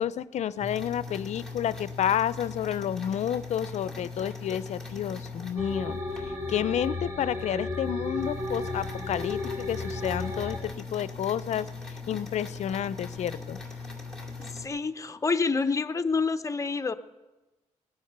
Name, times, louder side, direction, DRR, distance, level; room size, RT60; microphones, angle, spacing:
voice 1, 0.0-13.6, left 10 dB, 65° left, 17 dB, 0.5 m, -30 dB
sound 1, 0.6-6.3 6.8-6.9 7.4-7.5 7.7-14.7, left 4 dB, 5° left, 2.3 m, -40 dB
sound 2, 5.6-10.6, left 2 dB, 20° right, 2.8 m, -34 dB
voice 2, 14.5-16.9, left 4 dB, 25° left, 9 dB, 0.6 m, -27 dB
19.0 x 9.6 x 6.7 m, 1.1 s
cardioid pair, 120°, 13 cm